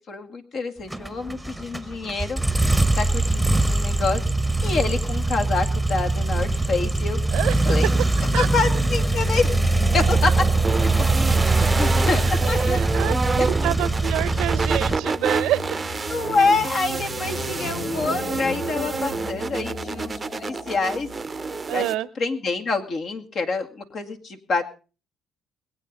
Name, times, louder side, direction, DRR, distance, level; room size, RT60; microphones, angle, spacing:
voice 1, 0.0-2.4 2.9-4.2 4.6-7.2 7.6-7.9 8.4-9.5 9.9-10.3 10.8-10.9 11.4-12.8 13.4-13.6 16.1-21.1 21.7-24.6, left 3 dB, 60° left, 5 dB, 2.1 m, -26 dB
sound 1, 0.9-15.0, right 2 dB, 5° right, 1.0 m, -22 dB
voice 2, 7.3-8.0 8.3-8.5 12.7-13.1 13.5-15.8 21.7-22.1, right 14 dB, 85° right, 18 dB, 0.7 m, -27 dB
sound 2, 8.2-21.9, equal, 80° left, 3.7 m, -38 dB
sound 3, 10.6-21.9, right 4 dB, 30° right, 0.6 m, -29 dB
21.0 x 8.7 x 5.3 m, 0.35 s
cardioid pair, 80°, 0 cm